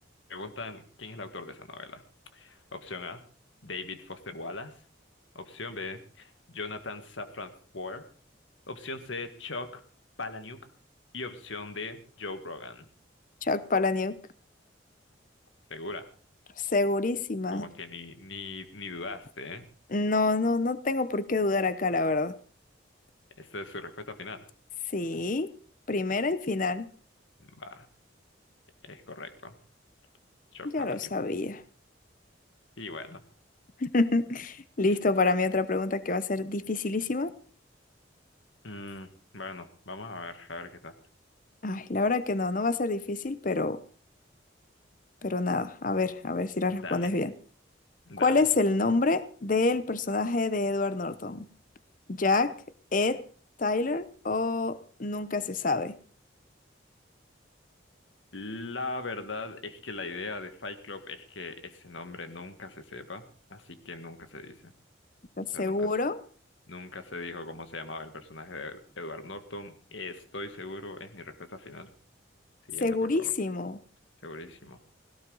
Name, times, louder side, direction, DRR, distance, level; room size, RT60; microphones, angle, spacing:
voice 1, 0.3-2.0 2.3-3.2 3.6-4.8 5.4-8.0 8.7-9.8 10.2-10.6 11.1-12.9 15.7-16.1 17.5-19.7 23.4-24.4 27.4-27.9 28.8-29.6 30.5-31.1 32.8-33.2 34.9-35.0 38.6-41.0 46.7-47.1 48.1-48.4 58.3-64.7 65.5-65.9 66.7-71.9 72.7-73.3 74.2-74.8, left 3 dB, 75° left, 1.8 m, -40 dB
voice 2, 13.4-14.2 16.6-17.7 19.9-22.3 24.9-25.5 25.9-26.9 30.6-31.6 33.8-37.3 41.6-43.8 45.2-47.3 48.2-51.5 52.1-52.6 52.9-53.2 53.6-55.9 65.4-66.2 72.8-73.8, left 3 dB, 45° left, 0.8 m, -27 dB
17.0 x 17.0 x 4.0 m
head